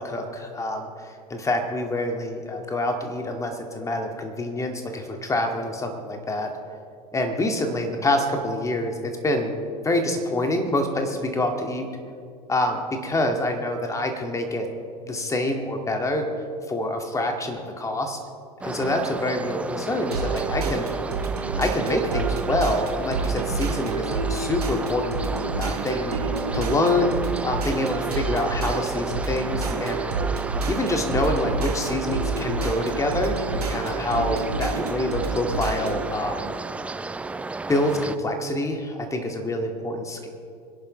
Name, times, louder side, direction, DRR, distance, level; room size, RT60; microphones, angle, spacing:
voice 1, 0.0-6.5 7.1-9.6 9.8-11.9 12.5-14.7 15.0-16.3 16.7-18.2 18.6-20.9 21.6-25.2 25.6-26.1 26.5-27.2 27.4-30.1 30.7-36.5 37.7-40.3, left 1 dB, 15° left, 3 dB, 2.1 m, -26 dB
sound 1, 18.6-38.2, right 3 dB, 5° right, 0.3 m, -33 dB
sound 2, 20.1-36.1, right 4 dB, 75° right, 1.5 m, -29 dB
25.0 x 11.0 x 3.3 m, 2.4 s
figure-of-eight pair, 80°, 20 cm